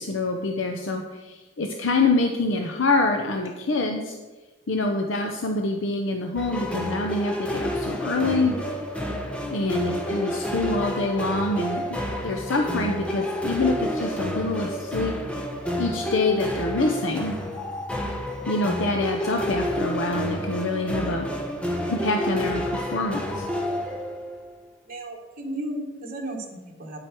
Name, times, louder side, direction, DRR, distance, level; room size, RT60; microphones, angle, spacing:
voice 1, 0.0-4.2 4.7-8.6 9.5-12.0 12.2-15.1 15.8-17.3 18.5-21.3 21.9-23.5, left 2 dB, 75° left, 3 dB, 0.8 m, -26 dB
sound 1, 6.4-24.5, equal, 5° left, 1.0 m, -29 dB
voice 2, 21.0-21.5 24.8-27.0, right 1 dB, 45° right, -1 dB, 1.5 m, -35 dB
9.8 x 7.8 x 4.5 m, 1.2 s
head